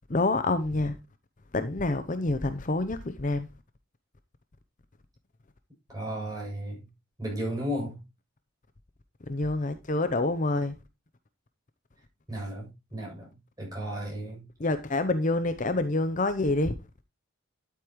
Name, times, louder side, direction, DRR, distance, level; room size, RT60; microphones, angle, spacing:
voice 1, 0.1-0.9 1.5-3.5 9.3-10.7 14.6-16.7, left 2 dB, 35° left, 0.7 m, -27 dB
voice 2, 5.9-6.8 7.2-8.0 12.3-13.3 13.6-14.4, equal, 15° right, 7.3 m, -34 dB
12.0 x 8.3 x 3.1 m
head